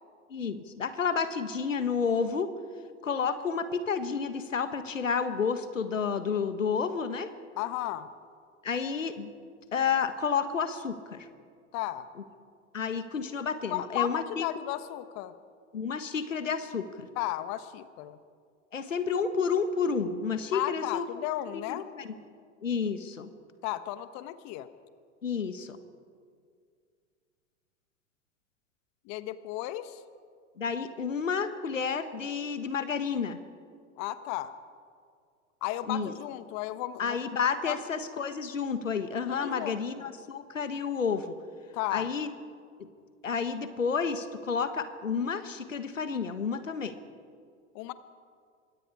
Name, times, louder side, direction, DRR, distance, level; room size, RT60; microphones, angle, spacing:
voice 1, 0.3-2.5 3.0-7.3 8.6-9.3 9.7-11.3 12.7-14.4 15.7-17.1 18.7-21.0 21.5-22.1 22.6-23.3 25.2-25.8 30.6-33.4 35.9-36.1 37.0-41.3 41.9-42.3 42.8-42.9 43.2-47.0, left 6 dB, 85° left, 10 dB, 1.5 m, -30 dB
voice 2, 7.6-8.1 11.7-12.1 13.7-15.3 17.2-18.2 20.5-21.9 23.6-24.7 29.0-30.0 34.0-34.5 35.6-37.2 37.7-37.8 39.3-39.8 41.7-42.1 47.7-47.9, left 14 dB, 45° left, 12 dB, 1.2 m, -34 dB
25.5 x 23.5 x 4.9 m, 2.1 s
figure-of-eight pair, 90°, 37 cm